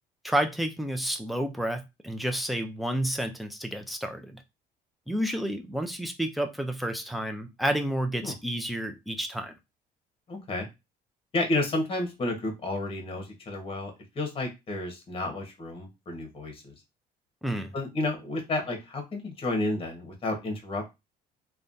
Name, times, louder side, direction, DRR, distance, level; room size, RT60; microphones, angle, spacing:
voice 1, 0.2-4.4 5.1-9.5 17.4-17.7, right 1 dB, ahead, 0.5 m, -30 dB
voice 2, 10.3-10.7 11.3-16.7 17.7-20.9, left 2 dB, 35° left, 1.2 m, -31 dB
3.1 x 2.4 x 2.6 m
cardioid pair, 110°, 17 cm